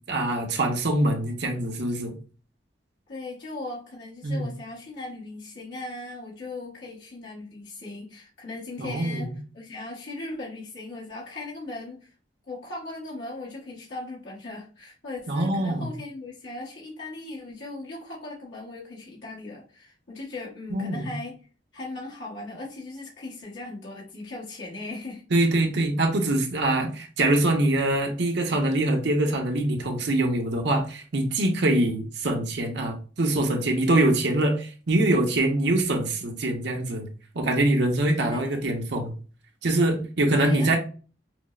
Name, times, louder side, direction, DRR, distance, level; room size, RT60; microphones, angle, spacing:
voice 1, 0.1-2.1 4.2-4.5 8.8-9.3 15.3-15.9 20.7-21.1 25.3-37.1 37.3-39.1 39.6-40.8, right 1 dB, 70° right, 3 dB, 0.8 m, -24 dB
voice 2, 3.1-12.1 12.4-21.4 21.7-25.2 38.2-38.8 40.4-40.8, left 2 dB, 80° left, -5 dB, 1.2 m, -38 dB
5.9 x 2.0 x 2.4 m, 0.37 s
head